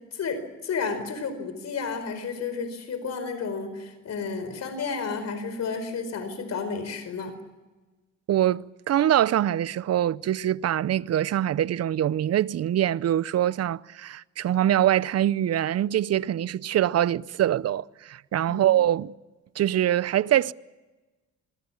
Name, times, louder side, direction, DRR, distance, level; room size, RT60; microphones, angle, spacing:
voice 1, 0.1-7.4 18.5-18.6, left 5 dB, 60° left, 4.7 m, -32 dB
voice 2, 8.3-19.1 19.6-20.5, right 11 dB, 55° right, 0.7 m, -24 dB
26.5 x 21.0 x 7.3 m
cardioid pair, 90°, 30 cm